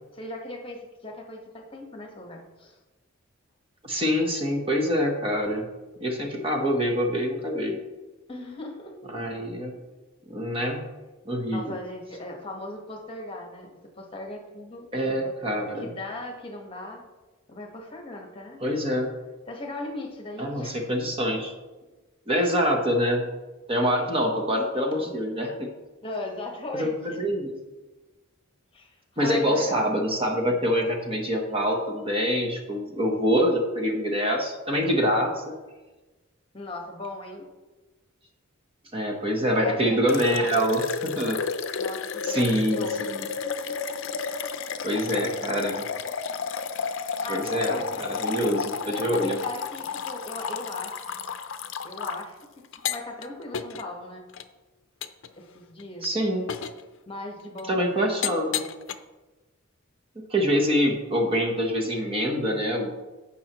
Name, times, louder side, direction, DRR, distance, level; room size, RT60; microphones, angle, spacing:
voice 1, 0.1-2.8 8.3-9.5 11.5-15.3 15.8-17.0 17.5-18.6 19.5-20.9 26.0-27.2 28.7-29.9 36.5-37.4 39.6-40.7 41.8-43.0 47.2-48.1 48.8-51.1 51.8-52.4 52.7-54.2 55.3-56.1 57.1-58.2, left 2 dB, 25° left, 1 dB, 1.3 m, -38 dB
voice 2, 3.8-5.7 6.0-7.8 9.1-9.7 10.3-10.8 11.2-11.7 14.9-15.9 18.6-19.1 20.4-21.5 22.3-23.3 23.7-25.7 26.7-27.5 29.2-35.4 38.9-41.4 42.2-43.3 44.8-45.8 47.3-49.4 56.0-56.5 57.7-58.6 60.3-62.9, equal, 25° right, 1 dB, 1.0 m, -25 dB
sound 1, 40.1-52.2 52.7-53.2 53.5-53.8 54.3-54.4 55.0-55.3 55.8-56.0 56.5-56.8 57.6-57.7 58.2-58.9, left 6 dB, 60° left, 0.5 m, -31 dB
15.5 x 5.5 x 3.0 m, 1.2 s
head